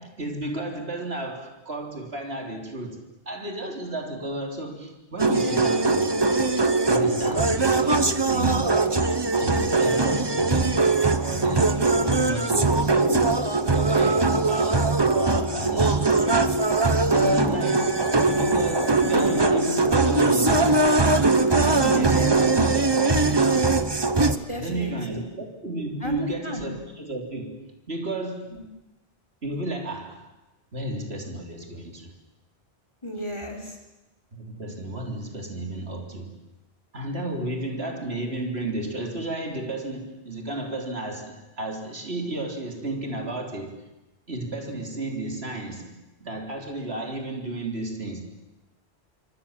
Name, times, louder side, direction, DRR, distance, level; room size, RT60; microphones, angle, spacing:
voice 1, 0.0-6.1 6.9-8.8 9.4-16.1 17.1-18.0 18.4-23.8 24.6-28.6 29.4-30.3 30.7-32.1 34.3-36.4 36.9-43.8 44.3-48.4, right 2 dB, 70° right, 2 dB, 3.8 m, -33 dB
sound 1, 5.2-24.4, right 3 dB, 25° right, 1.1 m, -21 dB
voice 2, 5.3-5.7 19.0-19.3 24.3-25.2 26.0-26.7 28.5-28.7 33.0-33.8, left 1 dB, 25° left, 3 dB, 4.0 m, -34 dB
26.5 x 25.0 x 7.4 m, 1.0 s
omnidirectional pair, 1.1 m